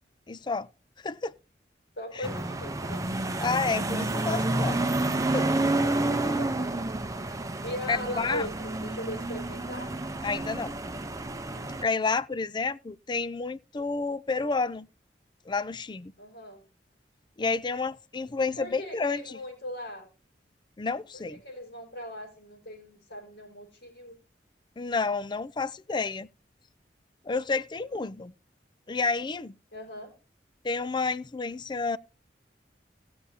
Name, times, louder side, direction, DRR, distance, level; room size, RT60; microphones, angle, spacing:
voice 1, 0.3-0.7 1.0-1.3 2.2-2.3 3.4-4.8 5.3-5.5 7.9-8.5 10.2-10.7 11.8-14.9 15.5-16.1 17.4-19.4 20.8-21.4 24.8-26.3 27.3-28.3 28.9-29.5 30.6-32.0, left 4 dB, 25° left, 0.4 m, -30 dB
voice 2, 2.0-3.0 5.8-6.7 7.2-9.9 16.2-16.6 18.4-20.1 21.3-24.2 29.7-30.1, left 1 dB, 75° left, 5.4 m, -39 dB
sound 1, 2.2-11.8, right 2 dB, 20° right, 0.8 m, -29 dB
18.0 x 6.9 x 2.8 m
head